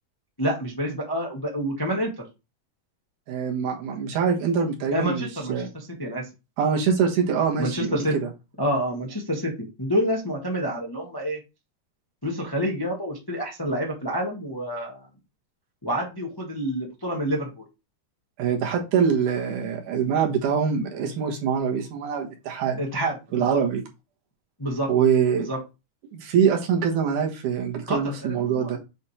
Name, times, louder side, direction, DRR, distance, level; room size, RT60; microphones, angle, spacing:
voice 1, 0.4-2.1 4.9-6.2 7.6-8.1 8.6-11.4 12.2-15.1 15.8-17.6 22.8-23.6 24.6-24.9 25.4-25.6 27.9-28.8, equal, 20° left, -1 dB, 0.6 m, -28 dB
voice 2, 3.3-5.7 6.6-8.3 18.4-22.8 23.3-23.8 24.9-25.5 26.1-28.8, right 7 dB, 80° right, 1 dB, 2.9 m, -24 dB
7.5 x 3.5 x 4.3 m, 0.27 s
omnidirectional pair, 3.6 m